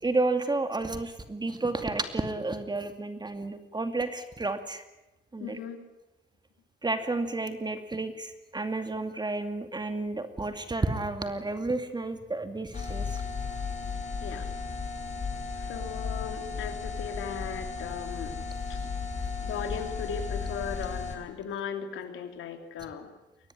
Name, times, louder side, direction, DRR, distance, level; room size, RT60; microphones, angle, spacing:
voice 1, 0.0-4.8 5.3-5.6 6.8-13.4, right 2 dB, 20° right, 8 dB, 2.5 m, -31 dB
voice 2, 5.4-5.8 14.2-14.5 15.6-18.4 18.7-18.8 19.4-23.1, left 7 dB, 85° left, 6 dB, 3.3 m, -37 dB
sound 1, 12.7-21.2, left 5 dB, 35° left, 6.0 m, -34 dB
23.0 x 18.0 x 9.8 m, 0.99 s
cardioid pair, 90°, 20 cm